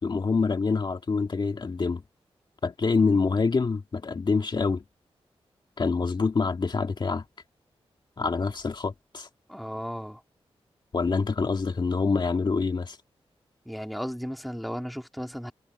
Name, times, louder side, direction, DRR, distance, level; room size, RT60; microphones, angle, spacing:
voice 1, 0.0-2.0 2.6-4.8 5.8-7.2 8.2-9.3 10.9-13.0, left 4 dB, 45° left, 2.1 m, -26 dB
voice 2, 9.5-10.2 13.6-15.5, equal, ahead, 2.7 m, -35 dB
wide cardioid pair, 85°, 11 cm